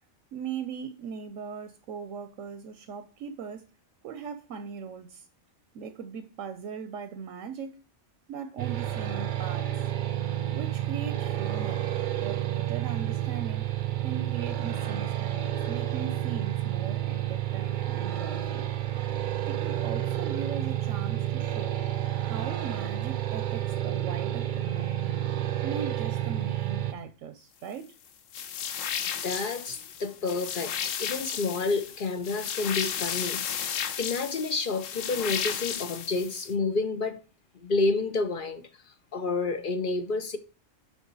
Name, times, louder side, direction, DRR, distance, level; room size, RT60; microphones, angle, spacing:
voice 1, 0.3-3.7 4.0-5.3 5.7-7.8 8.3-9.7 10.5-11.8 12.2-13.7 14.0-18.7 19.5-21.8 22.2-25.2 25.6-27.9, right 7 dB, 85° right, 1.1 m, -39 dB
sound 1, 8.6-26.9, right 13 dB, 55° right, 0.6 m, -30 dB
sound 2, 28.3-36.5, left 8 dB, 80° left, 1.1 m, -34 dB
voice 2, 29.2-37.2 37.6-38.6 39.1-40.4, left 3 dB, 50° left, 0.8 m, -29 dB
6.2 x 5.3 x 4.0 m
omnidirectional pair, 1.3 m